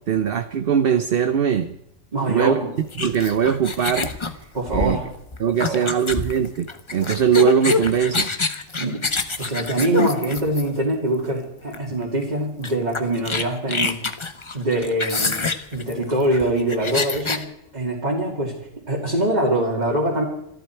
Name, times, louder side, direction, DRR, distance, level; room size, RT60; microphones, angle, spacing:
voice 1, 0.1-1.7 2.3-4.1 4.7-5.0 5.4-8.4, right 8 dB, 55° right, 10 dB, 0.8 m, -21 dB
voice 2, 2.1-2.7 4.5-5.0 5.5-5.9 8.8-9.0 9.4-14.0 14.5-15.5 15.7-18.5 18.9-20.2, right 1 dB, 35° right, -4 dB, 2.6 m, -23 dB
sound 1, 2.9-10.9 11.7-11.9 12.2-12.3 12.6-17.4, left 4 dB, 25° left, 0.8 m, -26 dB
26.0 x 12.0 x 4.6 m, 0.76 s
omnidirectional pair, 1.3 m